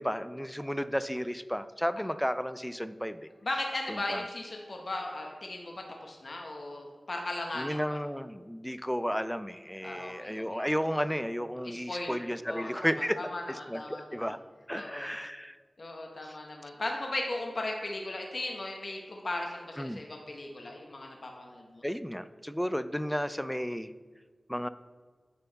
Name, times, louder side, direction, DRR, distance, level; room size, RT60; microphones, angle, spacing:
voice 1, 0.0-3.2 3.9-4.2 7.6-13.2 13.5-14.4 14.7-15.6 16.2-16.4 19.8-20.0 21.8-23.9 24.5-24.7, equal, 5° left, 13 dB, 0.3 m, -33 dB
voice 2, 3.4-7.8 9.8-10.6 11.6-12.2 12.5-14.3 14.7-15.1 15.8-21.8, left 2 dB, 60° left, 1 dB, 0.9 m, -37 dB
8.8 x 4.5 x 4.0 m, 1.5 s
wide cardioid pair, 55°, 0 cm